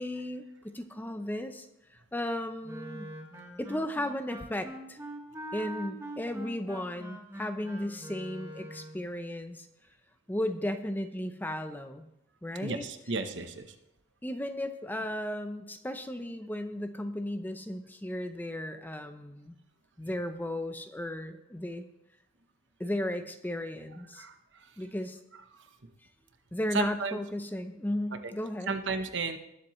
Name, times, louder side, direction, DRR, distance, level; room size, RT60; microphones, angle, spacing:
voice 1, 0.0-1.7 2.1-3.1 3.6-5.0 5.5-9.7 10.3-12.1 12.4-12.8 14.2-19.6 20.0-21.9 22.8-24.2 24.8-25.2 26.5-28.7, left 1 dB, 10° left, 8 dB, 0.6 m, -35 dB
Wind instrument woodwind instrument, 2.6-9.0, equal, 15° right, 1.5 m, -43 dB
voice 2, 12.6-13.7 24.2-24.4 25.5-25.6 26.7-27.2 28.2-28.3 28.7-29.4, right 4 dB, 65° right, 8 dB, 1.0 m, -33 dB
19.5 x 7.6 x 3.1 m, 0.86 s
head